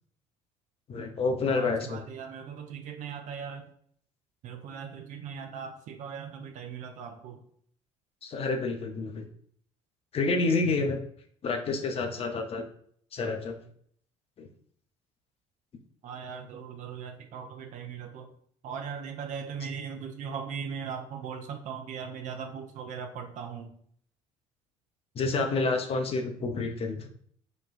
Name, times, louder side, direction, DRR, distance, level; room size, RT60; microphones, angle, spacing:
voice 1, 0.9-2.0 8.2-9.3 10.1-11.0 11.4-12.6 13.1-13.6 14.4-14.5 25.2-27.1, left 3 dB, 35° left, 5 dB, 0.5 m, -29 dB
voice 2, 1.5-3.7 4.4-7.4 16.0-18.3 18.6-23.7, right 6 dB, 50° right, 5 dB, 0.5 m, -39 dB
3.9 x 2.2 x 2.4 m, 0.62 s
figure-of-eight pair, 55°, 17 cm